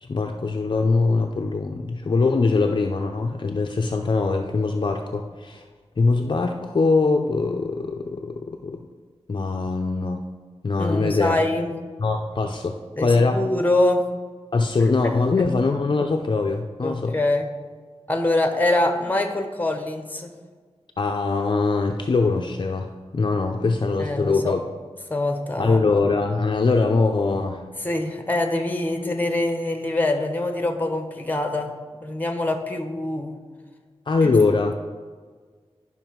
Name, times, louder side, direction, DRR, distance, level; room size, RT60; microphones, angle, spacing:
voice 1, 0.0-5.6 6.0-8.9 9.3-10.2 10.6-11.4 12.0-13.4 14.5-17.2 21.0-24.6 25.6-27.6 34.1-34.7, left 3 dB, 45° left, 3 dB, 0.5 m, -22 dB
voice 2, 10.8-11.7 13.0-14.0 16.8-17.5 18.1-20.3 24.0-24.5 25.1-25.8 27.8-31.7 32.0-33.3 34.2-34.3, left 2 dB, 15° left, 5 dB, 1.0 m, -24 dB
11.0 x 5.8 x 4.6 m, 1.5 s
wide cardioid pair, 100°, 11 cm